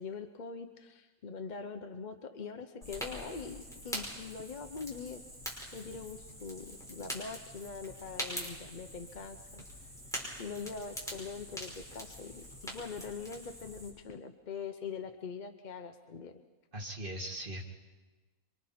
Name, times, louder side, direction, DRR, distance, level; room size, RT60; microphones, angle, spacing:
voice 1, 0.0-5.2 5.7-9.6 10.4-16.4, left 5 dB, 40° left, 7 dB, 0.7 m, -43 dB
Fire, 2.8-13.9, equal, ahead, 4.9 m, -44 dB
voice 2, 16.7-17.6, right 1 dB, 35° right, 0 dB, 2.4 m, -39 dB
27.0 x 24.0 x 4.3 m, 1.2 s
omnidirectional pair, 1.5 m